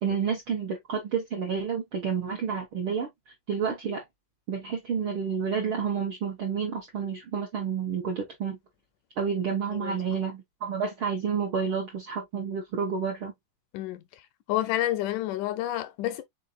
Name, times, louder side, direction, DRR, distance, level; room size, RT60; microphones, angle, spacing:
voice 1, 0.0-3.1 3.5-4.0 4.5-8.6 9.2-13.3, right 6 dB, 70° right, 1.2 m, -30 dB
voice 2, 13.7-14.0 14.5-16.2, left 14 dB, 80° left, 1.9 m, -29 dB
5.2 x 4.1 x 2.4 m
omnidirectional pair, 3.8 m